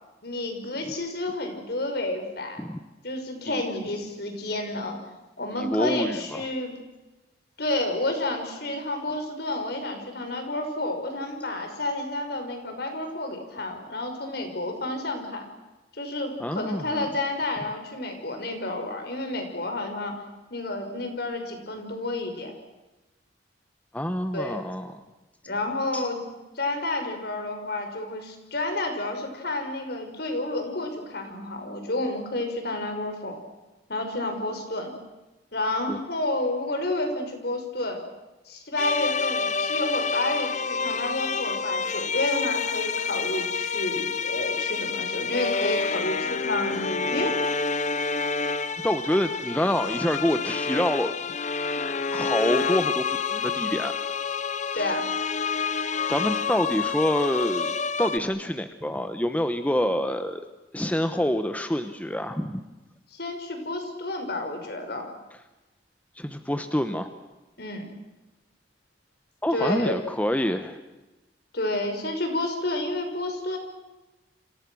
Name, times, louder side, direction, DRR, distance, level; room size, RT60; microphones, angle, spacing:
voice 1, 0.2-2.6 3.0-5.0 5.4-6.7 7.6-15.5 16.0-20.2 20.5-22.5 24.3-24.6 25.5-26.2 26.6-33.4 33.9-34.9 35.5-38.0 38.5-47.3 54.7-55.0 63.1-65.1 67.6-67.8 69.5-69.9 71.5-73.6, left 2 dB, 60° left, 5 dB, 5.7 m, -30 dB
voice 2, 5.6-6.5 16.4-17.1 23.9-25.0 25.9-26.1 35.9-36.0 48.8-51.1 52.1-54.0 54.7-54.8 56.1-60.4 60.7-62.6 66.2-67.1 69.4-70.8, equal, 10° left, 8 dB, 1.1 m, -27 dB
sound 1, 38.8-58.2, left 5 dB, 40° left, 0.9 m, -28 dB
29.5 x 26.5 x 6.3 m, 1.1 s
head